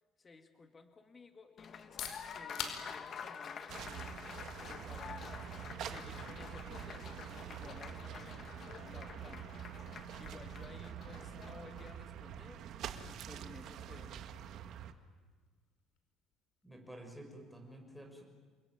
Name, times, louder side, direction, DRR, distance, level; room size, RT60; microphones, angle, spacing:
voice 1, 0.2-5.3 5.8-9.5 9.9-12.6 12.9-14.1, left 4 dB, 20° left, 6 dB, 1.9 m, -56 dB
Applause, 1.6-12.0, left 7 dB, 40° left, 1.7 m, -49 dB
Fizzy Drink Can Opening E, 1.7-17.3, left 8 dB, 65° left, 5.1 m, -53 dB
sound 1, 3.7-14.9, right 9 dB, 55° right, 1.8 m, -46 dB
voice 2, 16.6-18.2, right 1 dB, ahead, 3 dB, 6.1 m, -51 dB
28.5 x 22.5 x 9.4 m, 1.5 s
cardioid pair, 140°, 0 cm